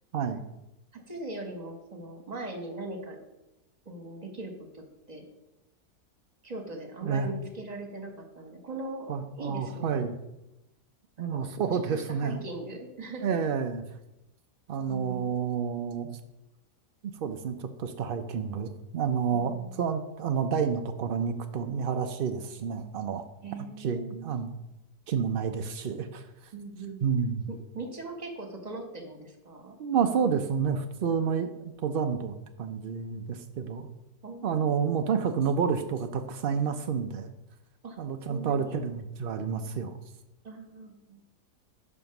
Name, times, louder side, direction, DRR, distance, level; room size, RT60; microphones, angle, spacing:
voice 1, 0.1-0.4 7.0-7.3 9.1-10.2 11.2-12.5 13.2-13.8 14.7-16.2 17.0-23.2 23.8-24.5 25.1-26.5 27.0-27.5 29.8-33.9 34.4-37.3 38.0-40.0, right 6 dB, 90° right, 7 dB, 0.5 m, -29 dB
voice 2, 0.9-3.2 3.8-5.2 6.4-10.1 11.2-13.4 14.9-15.3 19.3-19.7 23.4-24.4 26.5-27.0 27.5-29.8 34.2-35.1 37.8-38.0 38.3-38.8 40.4-41.2, right 2 dB, 25° right, 3 dB, 1.2 m, -40 dB
10.5 x 3.6 x 5.9 m, 0.91 s
omnidirectional pair, 1.7 m